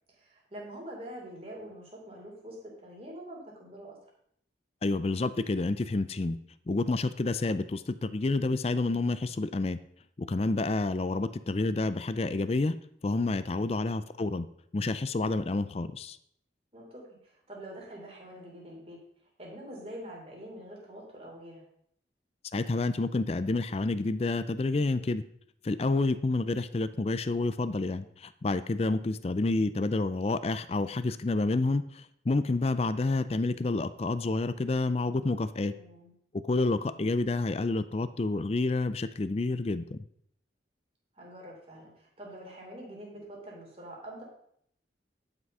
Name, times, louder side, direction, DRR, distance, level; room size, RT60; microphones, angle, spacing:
voice 1, 0.1-4.0 16.7-19.0 19.4-21.6 35.7-36.1 41.1-44.2, right 1 dB, 30° right, -2 dB, 3.2 m, -45 dB
voice 2, 4.8-6.4 6.7-9.8 10.2-12.8 13.0-14.5 14.7-16.2 22.5-25.2 25.6-35.7 36.4-40.0, left 2 dB, 35° left, 12 dB, 0.4 m, -29 dB
11.0 x 6.1 x 5.4 m, 0.68 s
head